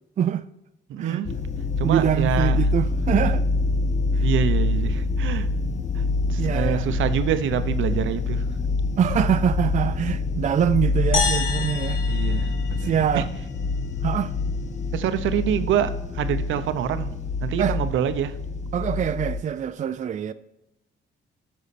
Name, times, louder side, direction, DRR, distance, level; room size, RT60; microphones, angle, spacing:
voice 1, 0.9-1.4 1.8-2.6 4.2-5.5 5.9-6.0 6.3-8.5 12.1-13.2 14.9-17.1 17.4-18.4, right 9 dB, 80° right, 0.8 m, -26 dB
sound 1, 1.3-19.4, left 3 dB, 35° left, 0.8 m, -26 dB
voice 2, 1.8-3.4 4.1-4.3 6.4-6.9 9.0-12.0 12.8-13.3 14.0-14.3 17.6-17.8 18.7-20.3, right 9 dB, 40° right, 0.4 m, -24 dB
sound 2, 11.1-13.6, left 5 dB, 80° left, 1.6 m, -29 dB
8.5 x 6.3 x 4.2 m
cardioid pair, 90°, 20 cm